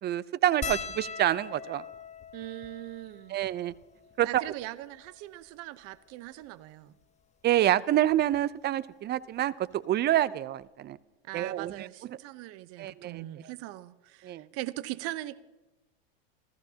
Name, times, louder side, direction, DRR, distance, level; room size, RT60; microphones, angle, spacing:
voice 1, 0.0-1.8 3.3-3.7 4.2-4.4 7.4-11.0 11.3-11.9 12.8-13.2 14.2-14.5, right 12 dB, 35° right, 18 dB, 0.7 m, -27 dB
sound 1, 0.6-5.2 6.0-6.1 6.3-6.5 7.7-7.9 9.4-9.5 9.7-9.9, left 5 dB, 20° left, 1.1 m, -41 dB
voice 2, 2.3-3.4 4.2-6.9 11.2-15.4, right 17 dB, 50° right, 14 dB, 1.0 m, -40 dB
30.0 x 14.5 x 2.9 m, 1.1 s
hypercardioid pair, 95°, 30 cm